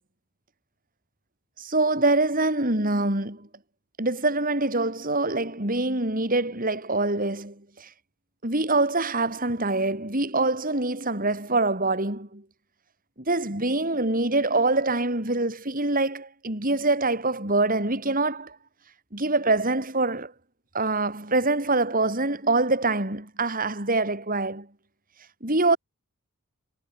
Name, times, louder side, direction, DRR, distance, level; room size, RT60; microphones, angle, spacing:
voice 1, 1.6-3.5 4.0-7.9 8.4-12.4 13.2-18.6 19.1-20.3 20.7-24.7 25.4-25.8, right 2 dB, 40° right, 6.0 m, -25 dB
head